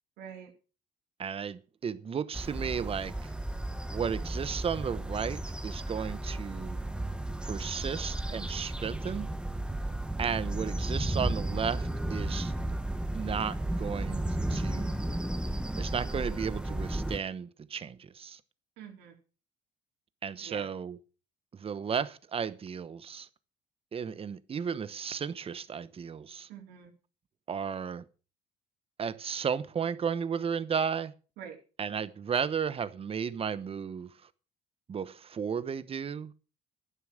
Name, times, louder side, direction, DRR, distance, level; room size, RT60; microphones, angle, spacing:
voice 1, 0.2-0.5 18.8-19.1 20.4-20.7 26.5-26.9 31.4-31.6, right 8 dB, 85° right, 3.9 m, -45 dB
voice 2, 1.2-3.3 3.9-6.8 7.4-9.3 10.2-12.5 13.1-14.2 14.5-14.9 15.8-18.4 20.2-21.0 21.5-23.3 23.9-26.5 27.5-28.0 29.0-31.1 31.8-34.2 34.9-36.3, right 7 dB, 35° right, 1.0 m, -34 dB
sound 1, 2.3-17.2, right 1 dB, 5° right, 1.0 m, -34 dB
11.0 x 9.7 x 6.4 m
cardioid pair, 110°, 17 cm